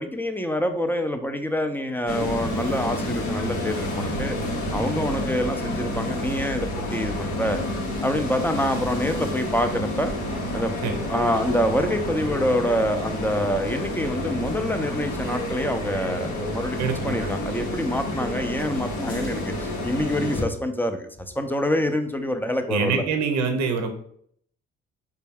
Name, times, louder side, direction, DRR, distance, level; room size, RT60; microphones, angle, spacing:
voice 1, 0.0-4.4 4.7-7.6 8.0-10.1 10.5-10.7 11.1-16.8 17.0-23.0, equal, 5° left, 6 dB, 0.5 m, -26 dB
sound 1, 2.1-20.4, left 1 dB, 75° left, 0.9 m, -29 dB
voice 2, 16.8-17.3 22.7-23.9, right 5 dB, 65° right, 6 dB, 0.6 m, -25 dB
4.1 x 2.3 x 3.4 m, 0.65 s
hypercardioid pair, 50°, 29 cm